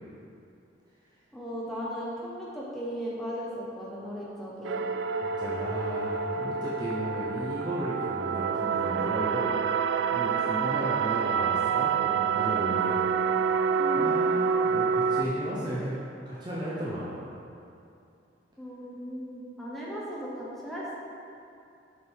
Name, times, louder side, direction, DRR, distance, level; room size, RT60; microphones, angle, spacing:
voice 1, 1.3-4.8 13.8-14.2 18.6-20.9, equal, ahead, -7 dB, 1.1 m, -37 dB
sound 1, 4.6-15.2, right 6 dB, 70° right, 0.3 m, -27 dB
voice 2, 5.2-9.6 10.1-13.1 13.9-15.9 16.2-17.2, equal, 25° right, -7 dB, 0.8 m, -34 dB
6.7 x 5.3 x 4.5 m, 2.6 s
head